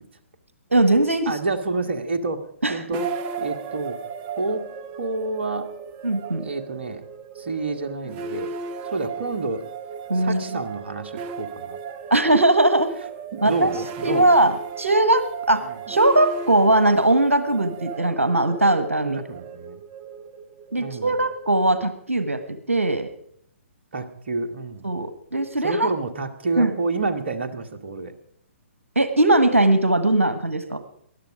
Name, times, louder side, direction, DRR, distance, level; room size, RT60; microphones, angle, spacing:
voice 1, 0.7-1.3 2.6-2.8 6.0-6.5 10.1-10.6 12.1-12.9 13.4-13.7 14.0-19.2 20.7-23.1 24.8-25.9 26.6-26.7 28.9-30.8, right 1 dB, 85° right, 10 dB, 1.5 m, -20 dB
voice 2, 1.3-2.4 2.7-3.1 3.4-4.0 4.4-4.6 5.0-5.7 6.4-7.0 7.3-8.5 8.8-9.7 10.1-11.8 13.3-14.3 15.6-15.7 19.0-19.8 20.8-21.2 23.9-24.9 25.6-28.2, right 3 dB, 55° right, 7 dB, 1.7 m, -29 dB
sound 1, 2.9-22.0, right 5 dB, 25° right, 0.9 m, -36 dB
20.0 x 12.0 x 4.9 m, 0.67 s
figure-of-eight pair, 125°, 7 cm